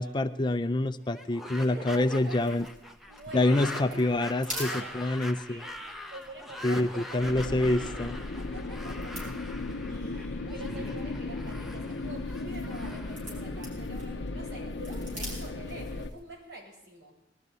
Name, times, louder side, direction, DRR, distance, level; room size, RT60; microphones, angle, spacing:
voice 1, 0.0-2.7 3.3-4.7 4.9-5.6 6.6-8.1 10.7-10.8, left 2 dB, 25° left, 9 dB, 0.5 m, -26 dB
sound 1, 1.1-14.2, left 1 dB, ahead, 0.8 m, -43 dB
voice 2, 1.6-2.6 3.1-5.0 5.4-5.8 6.1-7.6 8.3-9.2 9.9-17.1, right 2 dB, 75° right, -2 dB, 5.8 m, -45 dB
sound 2, 1.9-16.3, right 1 dB, 45° right, 6.7 m, -48 dB
sound 3, 7.2-16.1, left 2 dB, 80° left, 0.7 m, -36 dB
20.5 x 13.0 x 4.1 m, 0.83 s
head